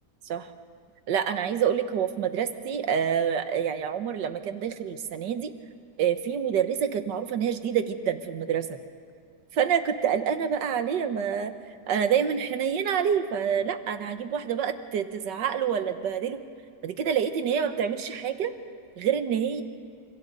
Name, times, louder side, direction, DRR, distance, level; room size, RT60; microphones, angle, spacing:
voice 1, 1.1-5.5 6.0-8.8 9.5-11.6 11.9-16.4 16.8-18.5 19.0-19.6, right 8 dB, 90° right, 9 dB, 1.7 m, -27 dB
29.0 x 27.0 x 4.0 m, 2.3 s
omnidirectional pair, 1.8 m